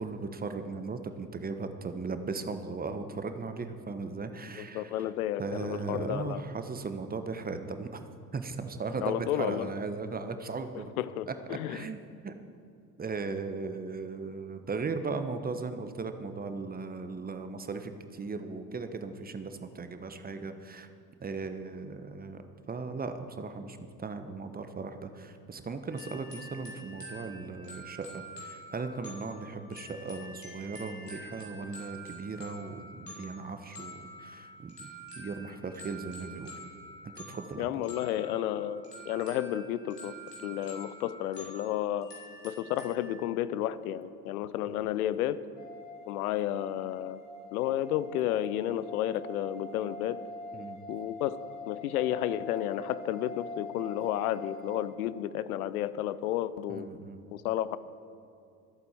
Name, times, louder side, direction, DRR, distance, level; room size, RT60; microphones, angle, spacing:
voice 1, 0.0-5.0 5.4-8.1 8.3-10.8 11.7-12.3 13.0-20.9 21.2-22.4 22.7-34.9 35.1-36.5 37.0-37.7 44.7-44.8 50.5-50.8 56.7-57.2, right 4 dB, 20° right, 8 dB, 1.1 m, -37 dB
voice 2, 4.6-6.4 9.0-9.7 10.7-11.9 37.6-40.2 40.4-42.1 42.4-45.4 46.1-47.2 47.5-50.2 50.9-51.4 51.7-56.9 57.3-57.8, left 12 dB, 70° left, 16 dB, 0.7 m, -32 dB
sound 1, 25.9-43.1, equal, 90° left, 2.9 m, -47 dB
sound 2, 45.6-54.9, left 2 dB, 20° left, 3.3 m, -44 dB
24.5 x 8.3 x 4.5 m, 2.5 s
figure-of-eight pair, 65°, 47 cm